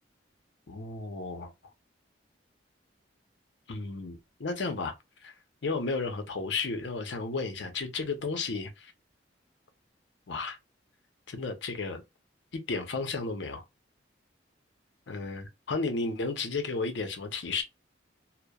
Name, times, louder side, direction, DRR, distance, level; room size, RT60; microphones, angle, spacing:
voice 1, 0.7-1.5 3.7-4.9 5.2-5.3 5.6-8.9 10.3-10.6 11.3-12.0 12.5-13.6 15.1-17.6, left 3 dB, 70° left, 0.6 m, -33 dB
2.9 x 2.0 x 2.2 m
head